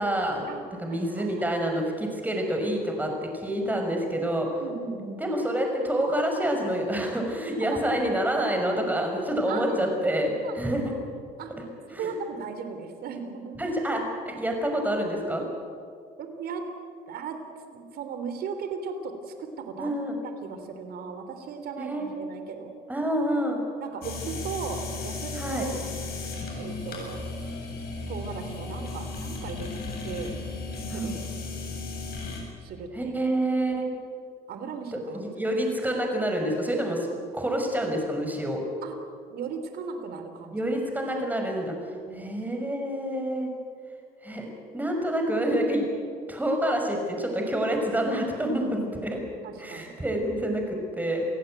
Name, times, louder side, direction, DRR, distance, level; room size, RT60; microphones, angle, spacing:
voice 1, 0.0-0.5 0.8-4.5 5.2-10.9 11.9-12.1 13.6-15.4 19.8-20.2 21.8-22.0 22.9-23.6 25.3-25.7 30.9-31.2 32.9-33.9 35.1-38.6 40.5-41.8 42.2-43.5 44.2-45.9 46.3-49.2 49.6-51.3, right 1 dB, 10° right, 2 dB, 5.9 m, -27 dB
voice 2, 0.9-1.5 4.6-5.2 7.6-8.0 8.6-8.8 9.5-10.0 10.4-10.6 11.4-11.5 11.9-13.6 16.2-16.6 17.1-17.4 17.7-19.9 20.4-22.7 23.8-25.9 26.5-27.3 28.1-29.7 30.0-30.4 30.8-31.3 32.6-33.2 34.5-35.2 38.8-39.0 39.3-40.5 42.1-42.4 48.4-49.0 49.4-50.0, right 5 dB, 65° right, 7 dB, 3.5 m, -37 dB
sound 1, 24.0-32.4, left 3 dB, 65° left, 7.7 m, -35 dB
28.0 x 16.5 x 9.1 m, 2.3 s
cardioid pair, 110°, 17 cm